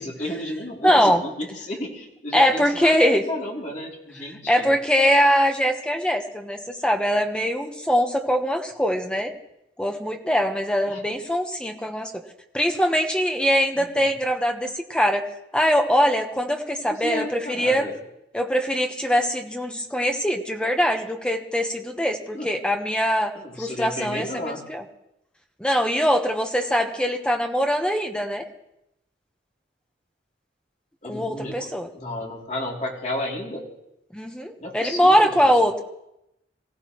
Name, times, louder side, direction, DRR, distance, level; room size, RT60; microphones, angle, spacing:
voice 1, 0.0-3.0 3.3-4.7 10.9-11.0 13.8-14.0 16.8-18.0 22.3-22.5 23.3-24.6 31.0-33.6 34.6-35.5, left 1 dB, 40° left, -1 dB, 3.0 m, -32 dB
voice 2, 0.8-1.2 2.3-3.2 4.5-9.3 9.8-12.1 12.5-15.2 15.5-17.9 18.3-23.3 23.6-24.8 25.6-28.4 31.1-31.9 34.1-35.8, equal, 5° left, 4 dB, 1.2 m, -22 dB
24.0 x 15.5 x 3.2 m, 0.83 s
head